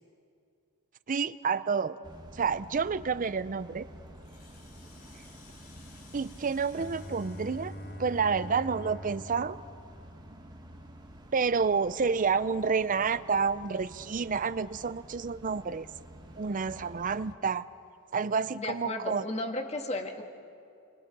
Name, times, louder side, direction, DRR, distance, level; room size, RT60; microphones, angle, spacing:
voice 1, 1.1-2.0 2.3-3.9 6.1-7.7 8.0-9.6 11.3-15.9 16.4-17.7 18.1-19.2, right 5 dB, 40° right, 15 dB, 0.5 m, -29 dB
sound 1, 2.0-17.3, equal, 20° right, 2.1 m, -50 dB
Rattle (instrument), 4.1-8.8, left 5 dB, 85° left, 2.5 m, -58 dB
Bowed string instrument, 6.7-10.7, left 1 dB, 45° left, 1.6 m, -44 dB
voice 2, 18.6-20.2, left 2 dB, 30° left, 4 dB, 1.8 m, -34 dB
29.5 x 23.5 x 5.4 m, 2.4 s
head